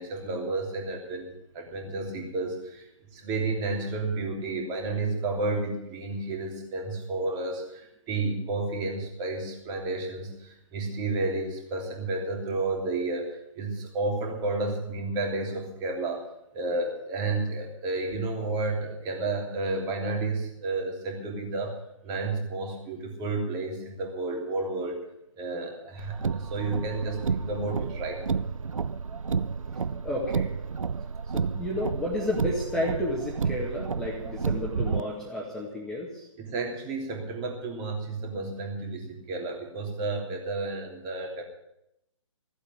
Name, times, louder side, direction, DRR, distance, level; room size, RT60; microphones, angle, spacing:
voice 1, 0.0-2.9 3.1-16.2 16.5-21.8 22.0-25.0 25.4-28.2 36.4-41.4, right 3 dB, 25° right, 2 dB, 3.2 m, -31 dB
Car, 26.0-35.0, right 5 dB, 85° right, 0.5 m, -31 dB
voice 2, 30.0-30.5 31.3-36.3, left 1 dB, 5° left, -4 dB, 2.1 m, -31 dB
15.0 x 8.3 x 9.3 m, 0.81 s
figure-of-eight pair, 135°, 17 cm